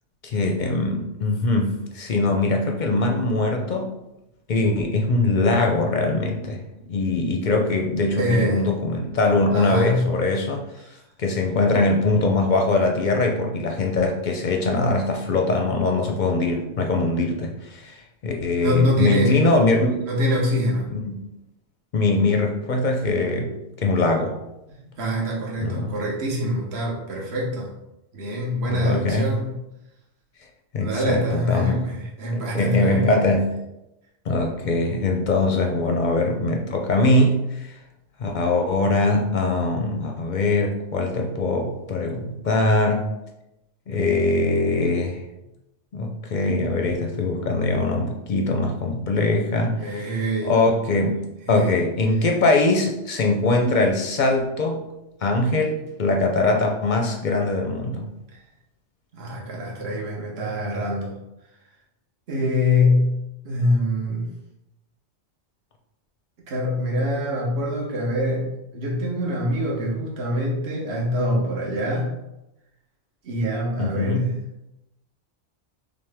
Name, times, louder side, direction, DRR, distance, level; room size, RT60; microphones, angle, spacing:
voice 1, 0.2-3.9 4.5-10.7 11.2-18.0 18.2-20.0 20.9-21.2 21.9-24.4 25.6-26.0 28.6-29.3 30.7-31.8 32.3-33.5 34.3-37.7 38.2-43.1 43.9-45.2 45.9-50.1 50.4-51.2 51.5-54.8 55.2-58.1 73.8-74.3, left 2 dB, 55° left, 2 dB, 0.6 m, -22 dB
voice 2, 8.1-8.7 9.5-10.1 10.8-10.9 18.6-19.4 20.0-20.9 24.8-27.7 28.1-29.5 30.8-33.1 49.8-50.5 51.5-51.8 58.3-58.4 59.1-61.1 62.3-63.2 63.4-64.3 66.5-72.1 73.2-74.4, left 1 dB, 60° right, -3 dB, 1.2 m, -24 dB
5.9 x 2.1 x 3.4 m, 0.91 s
omnidirectional pair, 1.2 m